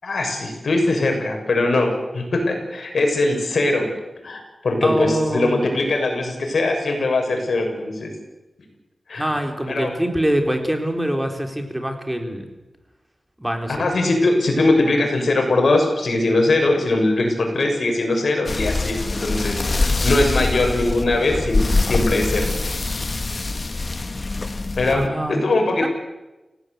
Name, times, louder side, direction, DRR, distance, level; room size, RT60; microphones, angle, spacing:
voice 1, 0.0-3.9 4.2-8.1 9.1-9.3 9.7-9.9 13.8-22.5 24.8-25.9, left 2 dB, 70° left, 3 dB, 6.8 m, -21 dB
voice 2, 4.8-5.6 9.2-12.5 13.4-13.8 24.9-25.4 25.8-25.9, right 1 dB, 10° right, 4 dB, 3.9 m, -24 dB
sound 1, 18.5-25.1, left 3 dB, 40° left, 1.5 m, -24 dB
29.5 x 17.0 x 8.3 m, 1.0 s
wide cardioid pair, 85°, 0 cm